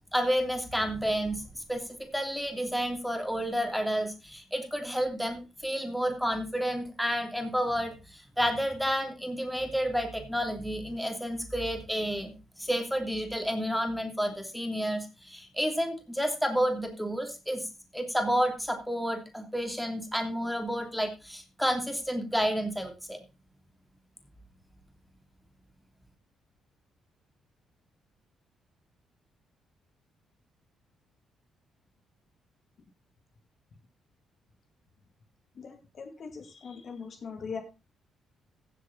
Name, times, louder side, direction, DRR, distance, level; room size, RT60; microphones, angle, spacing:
voice 1, 0.1-1.8 2.1-17.7 17.9-23.2, equal, ahead, 4 dB, 3.1 m, -30 dB
voice 2, 35.6-37.6, left 5 dB, 50° left, 5 dB, 2.4 m, -40 dB
15.0 x 7.6 x 4.1 m, 0.29 s
cardioid pair, 90°, 0 cm